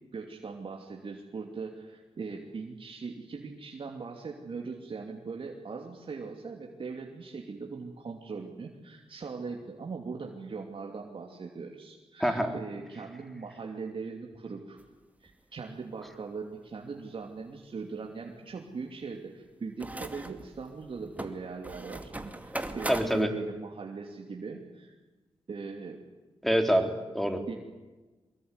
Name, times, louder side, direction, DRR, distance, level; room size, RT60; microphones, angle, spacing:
voice 1, 0.1-14.8 15.2-25.0 25.5-26.0 27.5-27.6, right 4 dB, 60° right, 1 dB, 2.9 m, -40 dB
voice 2, 12.2-12.5 22.5-23.3 26.4-27.4, equal, ahead, 6 dB, 4.0 m, -26 dB
sound 1, 14.8-14.9 15.2-15.3 19.8-23.2, right 1 dB, 15° right, 2.5 m, -40 dB
24.0 x 21.5 x 9.8 m, 1.2 s
cardioid pair, 75°, 10 cm